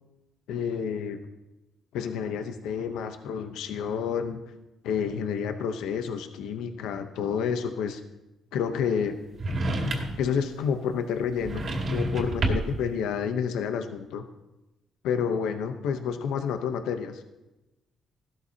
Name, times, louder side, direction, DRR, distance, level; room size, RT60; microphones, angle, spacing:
voice 1, 0.5-1.2 1.9-4.4 4.8-8.0 8.5-9.2 10.2-14.2 15.0-17.2, left 7 dB, 90° left, 7 dB, 0.8 m, -29 dB
sound 1, 9.4-10.3 11.4-12.8, right 1 dB, 50° right, 2.3 m, -28 dB
15.5 x 12.5 x 2.8 m, 0.99 s
cardioid pair, 90°, 0 cm